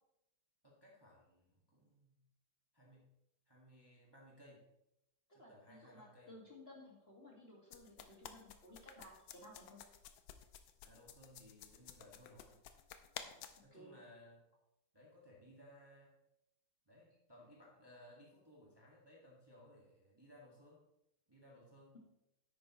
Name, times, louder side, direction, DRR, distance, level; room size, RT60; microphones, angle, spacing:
voice 1, 0.6-2.2 2.7-3.1 3.5-4.7 5.3-6.3 10.8-12.6 13.6-14.4 14.9-16.2 16.9-20.8 21.3-22.0, equal, 15° right, -4 dB, 1.7 m, -61 dB
voice 2, 5.4-9.8 13.1-14.0, left 1 dB, 30° left, -3 dB, 2.0 m, -58 dB
sound 1, 7.7-13.6, left 9 dB, 85° left, 1.5 m, -53 dB
10.5 x 8.5 x 3.1 m, 0.83 s
omnidirectional pair, 2.1 m